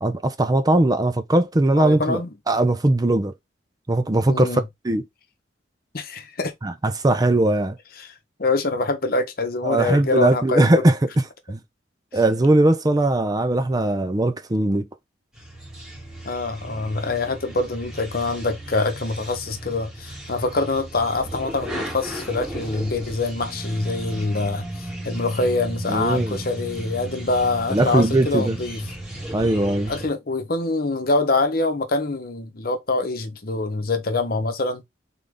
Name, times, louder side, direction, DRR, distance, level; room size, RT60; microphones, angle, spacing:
voice 1, 0.0-2.2 2.5-3.3 3.9-5.0 6.6-7.8 9.6-11.0 11.5-11.6 12.1-14.9 25.9-26.4 27.7-28.6 29.3-29.9, right 2 dB, 20° right, 0.4 m, -20 dB
voice 2, 1.8-2.3 4.3-4.7 5.9-6.5 8.0-10.8 16.2-28.9 29.9-34.8, left 3 dB, 50° left, 0.9 m, -25 dB
sound 1, 15.3-30.1, right 1 dB, 5° right, 1.9 m, -35 dB
3.8 x 3.5 x 3.6 m
head